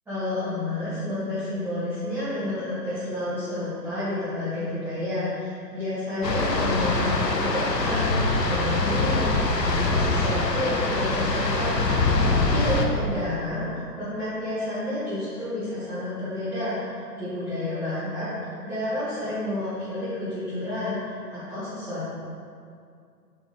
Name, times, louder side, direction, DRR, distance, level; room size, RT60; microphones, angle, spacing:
voice 1, 0.1-8.2 8.4-11.7 12.2-18.2 18.6-22.1, left 1 dB, 5° right, -16 dB, 1.6 m, -30 dB
sound 1, 6.2-12.9, left 3 dB, 90° left, 0.9 m, -24 dB
9.1 x 5.6 x 3.2 m, 2.3 s
figure-of-eight pair, 135°, 48 cm